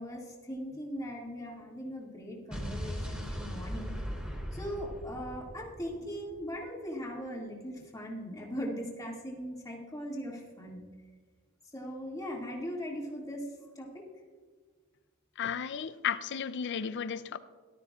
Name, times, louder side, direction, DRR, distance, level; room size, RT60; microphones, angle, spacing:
voice 1, 0.0-4.0 4.5-10.8 11.7-13.4 13.8-14.1, equal, 15° left, 2.1 m, -39 dB
Explosion, 2.5-6.6, equal, 5° right, 3.0 m, -39 dB
voice 2, 15.4-17.4, left 7 dB, 55° left, 0.4 m, -34 dB
17.5 x 12.5 x 2.4 m
head